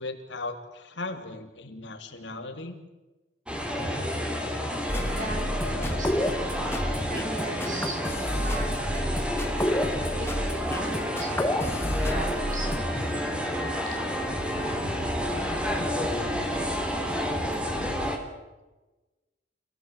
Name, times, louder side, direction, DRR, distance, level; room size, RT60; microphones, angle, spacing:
voice 1, 0.0-2.8, left 2 dB, 70° left, 5 dB, 3.1 m, -37 dB
sound 1, 3.5-18.2, equal, 5° right, 3.4 m, -30 dB
sound 2, 4.9-12.8, left 1 dB, 15° left, 1.8 m, -30 dB
voice 2, 5.1-6.6 7.1-8.0 8.3-9.4 10.1-13.3, right 2 dB, 45° right, 1 dB, 6.8 m, -39 dB
27.5 x 17.0 x 8.3 m, 1.1 s
head